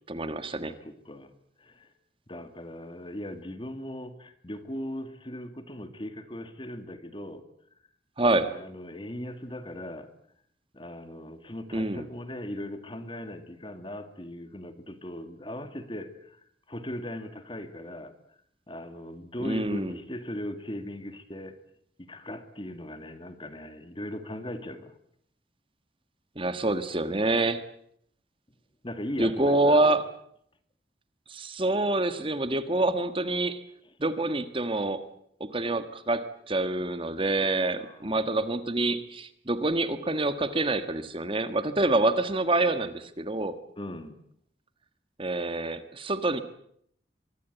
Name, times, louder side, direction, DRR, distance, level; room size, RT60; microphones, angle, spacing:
voice 1, 0.1-0.7 8.2-8.5 11.7-12.1 19.4-20.0 26.3-27.6 29.2-30.0 31.3-33.6 34.0-35.0 35.4-43.5 45.2-46.4, right 2 dB, 30° right, 1.5 m, -26 dB
voice 2, 0.7-1.9 2.3-7.4 8.4-10.1 10.7-16.4 16.7-18.2 18.7-21.6 22.0-24.9 28.8-30.0 33.8-33.9 37.8-38.2 43.8-44.2, left 1 dB, 30° left, 2.1 m, -39 dB
24.0 x 22.0 x 8.2 m
head